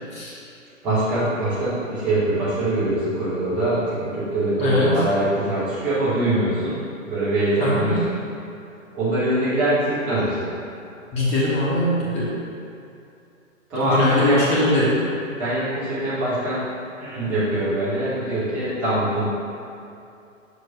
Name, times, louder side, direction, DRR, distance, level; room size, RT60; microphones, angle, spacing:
voice 1, 0.8-6.8 7.1-8.0 8.9-10.5 13.7-14.7 15.4-16.6 17.0-19.3, right 1 dB, 5° right, -13 dB, 0.4 m, -23 dB
voice 2, 4.6-4.9 7.6-8.0 11.1-12.4 13.9-15.0, left 1 dB, 15° left, -7 dB, 1.2 m, -21 dB
6.7 x 6.0 x 2.6 m, 2.6 s
figure-of-eight pair, 125°, 40 cm